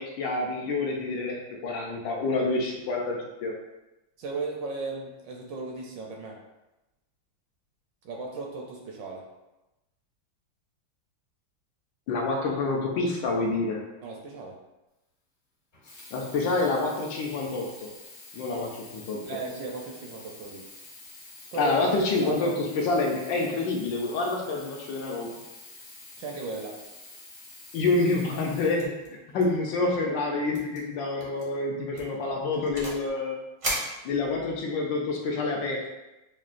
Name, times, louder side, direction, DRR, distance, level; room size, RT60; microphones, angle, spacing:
voice 1, 0.0-3.5 12.1-13.8 16.1-17.9 18.3-19.2 21.5-25.4 27.7-28.9 29.3-33.4 34.0-35.9, left 3 dB, 75° left, 0 dB, 1.2 m, -27 dB
voice 2, 4.2-6.4 8.0-9.3 14.0-14.6 19.3-20.7 21.5-21.8 22.2-22.5 26.2-26.8, right 3 dB, 75° right, 0 dB, 1.1 m, -36 dB
Sink (filling or washing), 15.7-29.5 30.2-30.3, left 2 dB, 50° left, 0.8 m, -48 dB
sound 1, 28.8-29.1 29.4-29.6 29.9-30.0 30.5-30.8 31.2-31.4 31.9-33.1 33.6-34.6, right 1 dB, 55° right, 0.6 m, -35 dB
5.9 x 2.2 x 2.4 m, 0.98 s
omnidirectional pair, 2.2 m